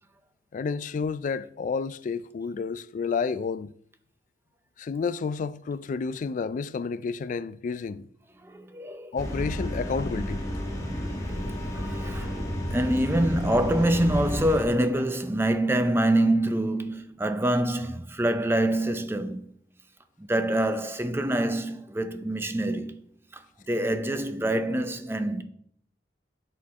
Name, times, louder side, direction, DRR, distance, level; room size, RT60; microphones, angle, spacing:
voice 1, 0.5-3.7 4.8-8.1 9.1-10.4, left 5 dB, 45° left, 0.3 m, -30 dB
voice 2, 8.4-9.2 11.3-11.4 11.7-12.4 12.7-19.4 20.2-23.0 23.3-25.4, right 1 dB, 15° right, 0.5 m, -26 dB
sound 1, 9.2-14.6, equal, 20° left, 1.3 m, -31 dB
8.3 x 4.6 x 4.2 m
head